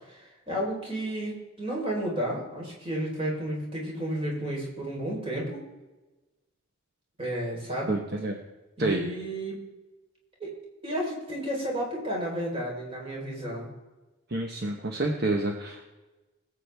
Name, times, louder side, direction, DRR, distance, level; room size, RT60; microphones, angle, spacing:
voice 1, 0.1-5.6 7.2-8.0 8.8-9.6 10.4-10.5 10.8-13.7, right 1 dB, 25° right, -3 dB, 3.9 m, -32 dB
voice 2, 7.9-8.4 8.8-9.0 14.3-15.9, right 2 dB, 50° right, 2 dB, 1.1 m, -28 dB
20.5 x 8.4 x 3.5 m, 1.1 s
head